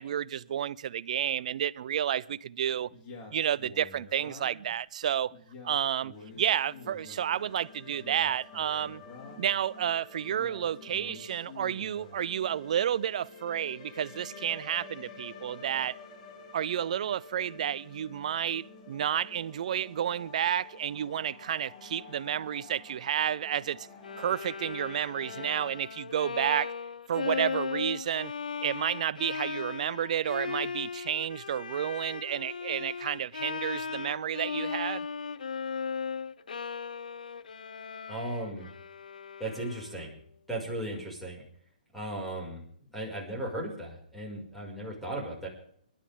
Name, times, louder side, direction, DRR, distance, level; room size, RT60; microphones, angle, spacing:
voice 1, 0.0-2.9 3.3-5.3 5.6-9.0 9.4-16.0 16.5-23.9 24.2-26.7 27.1-28.3 28.6-35.1, right 9 dB, 55° right, 0.6 m, -31 dB
Male speech man speaking, 2.9-4.7 5.3-7.3 7.8-9.5 10.2-12.2, left 3 dB, 30° left, 4.3 m, -49 dB
sound 1, 6.1-25.8, left 4 dB, 45° left, 3.7 m, -50 dB
Bowed string instrument, 24.0-40.1, left 6 dB, 70° left, 0.7 m, -37 dB
voice 2, 38.1-38.7 39.4-40.1 40.5-41.4 41.9-42.6 42.9-45.5, right 1 dB, ahead, 5.9 m, -36 dB
28.0 x 12.0 x 3.7 m
figure-of-eight pair, 130°, 5 cm